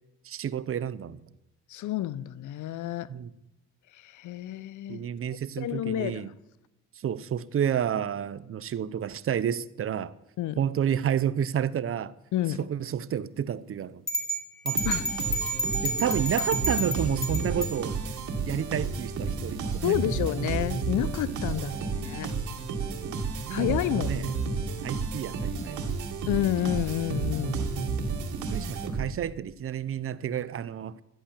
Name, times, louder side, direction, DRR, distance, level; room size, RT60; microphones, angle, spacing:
voice 1, 0.2-1.2 3.1-3.3 4.9-6.3 7.0-10.1 10.6-12.1 12.6-14.0 14.6-14.8 15.8-18.0 18.5-19.9 21.6-21.9 23.0-23.8 24.1-24.3 24.8-25.8 28.5-31.0, right 9 dB, 45° right, 0.6 m, -30 dB
voice 2, 1.7-3.1 3.9-5.0 5.6-6.2 10.4-10.6 12.3-12.6 14.8-15.1 19.8-22.3 23.5-24.1 26.3-27.7, left 13 dB, 75° left, 0.6 m, -29 dB
sound 1, 14.1-17.8, right 1 dB, ahead, 2.5 m, -30 dB
sound 2, 14.7-29.3, right 4 dB, 75° right, 2.2 m, -31 dB
13.0 x 9.9 x 7.3 m
cardioid pair, 90°, 30 cm